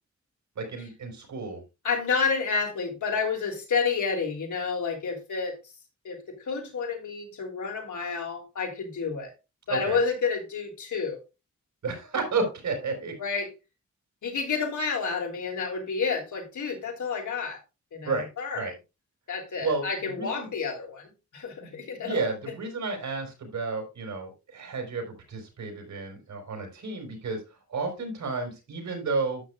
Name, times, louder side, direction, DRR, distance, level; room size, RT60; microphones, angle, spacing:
voice 1, 0.5-1.6 9.7-10.0 11.8-13.1 18.0-18.3 18.5-18.7 19.6-20.5 21.6-27.4 27.7-29.4, right 3 dB, 75° right, 4.5 m, -32 dB
voice 2, 1.8-5.5 6.0-9.3 9.7-11.2 13.2-13.5 14.2-17.6 17.9-18.7 19.3-22.2, left 5 dB, 80° left, 3.2 m, -30 dB
12.0 x 8.2 x 2.4 m
wide cardioid pair, 170°, 30 cm